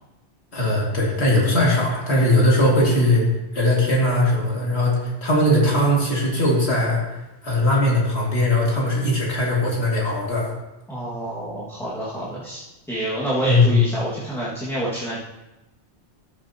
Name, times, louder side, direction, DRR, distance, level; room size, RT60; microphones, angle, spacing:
voice 1, 0.5-3.2 3.5-7.0 7.4-10.5 13.5-13.8, left 1 dB, 70° left, -3 dB, 2.4 m, -19 dB
voice 2, 10.9-15.2, right 1 dB, ahead, -8 dB, 1.7 m, -28 dB
13.5 x 7.4 x 2.8 m, 1.0 s
omnidirectional pair, 1.1 m